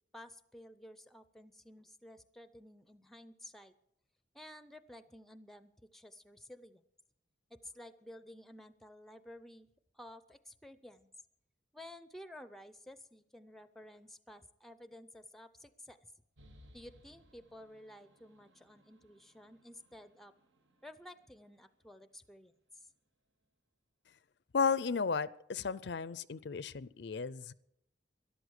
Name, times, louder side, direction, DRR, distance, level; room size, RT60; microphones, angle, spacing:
voice 1, 0.1-3.7 4.3-6.8 7.5-9.7 9.9-11.1 11.7-16.1 16.7-20.3 20.8-22.9, left 1 dB, ahead, 13 dB, 0.6 m, -53 dB
sound 1, 16.4-21.9, equal, 80° right, 1.6 m, -64 dB
voice 2, 24.5-27.5, left 5 dB, 65° left, 18 dB, 0.5 m, -34 dB
13.0 x 11.5 x 8.0 m, 0.76 s
head